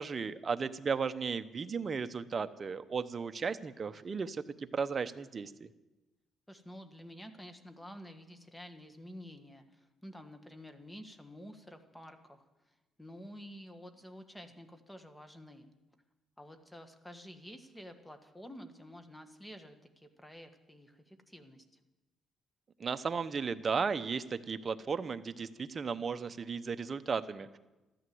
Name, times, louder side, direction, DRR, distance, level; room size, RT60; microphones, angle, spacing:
voice 1, 0.0-5.7 22.8-27.6, right 5 dB, 40° right, 11 dB, 0.9 m, -35 dB
voice 2, 6.5-15.7 16.4-21.8, equal, 10° left, 7 dB, 1.8 m, -50 dB
14.0 x 13.0 x 7.8 m, 1.1 s
cardioid pair, 90°, 0 cm